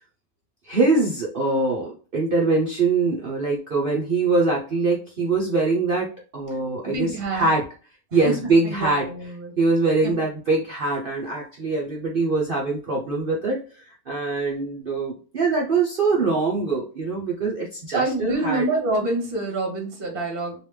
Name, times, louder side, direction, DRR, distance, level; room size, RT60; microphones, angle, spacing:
voice 1, 0.6-6.1 6.3-7.6 8.1-9.1 9.6-18.6, right 3 dB, 60° right, -3 dB, 0.6 m, -23 dB
voice 2, 6.8-7.5 8.2-8.3 8.6-9.5 10.0-10.1 17.9-20.5, right 2 dB, 40° right, 1 dB, 1.1 m, -26 dB
3.2 x 3.0 x 3.2 m, 0.37 s
omnidirectional pair, 1.8 m